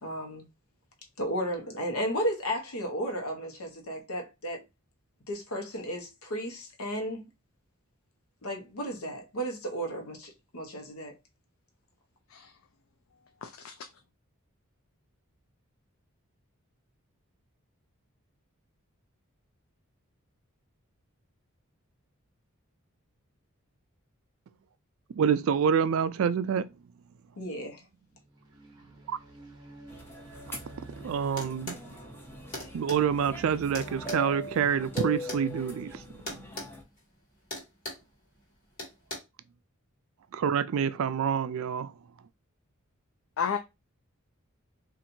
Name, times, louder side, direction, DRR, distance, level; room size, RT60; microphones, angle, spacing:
voice 1, 0.0-0.4 1.2-4.6 5.3-7.3 8.4-11.1 27.4-27.8, equal, 85° left, 1.0 m, -34 dB
voice 2, 13.4-13.9 43.4-43.6, left 7 dB, 65° left, 0.4 m, -32 dB
voice 3, 25.2-26.7 31.0-31.8 32.7-36.0 40.3-41.9, right 7 dB, 65° right, 0.3 m, -27 dB
sound 1, 28.1-34.1, right 2 dB, 20° right, 0.8 m, -49 dB
sound 2, 29.9-36.8, left 1 dB, 10° left, 0.5 m, -41 dB
sound 3, 31.4-31.9 32.5-33.0 33.7-35.4 36.3-36.7 37.0-37.2 37.5-38.1 38.8-39.2, left 1 dB, 40° left, 1.6 m, -38 dB
4.3 x 2.5 x 2.7 m
head